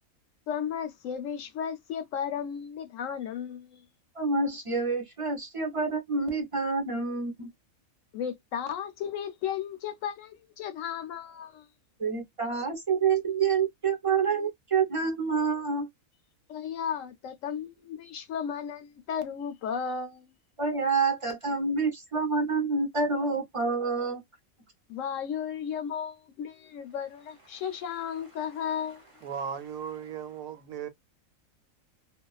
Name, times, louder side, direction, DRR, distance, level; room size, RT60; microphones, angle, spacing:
voice 1, 0.5-3.8 8.1-11.7 16.5-20.3 24.9-29.0, left 8 dB, 70° left, 0.9 m, -34 dB
voice 2, 4.1-7.5 12.0-15.9 20.6-24.2, right 4 dB, 30° right, 0.6 m, -27 dB
voice 3, 29.2-30.9, right 7 dB, 80° right, 1.0 m, -36 dB
2.4 x 2.3 x 2.3 m
omnidirectional pair, 1.4 m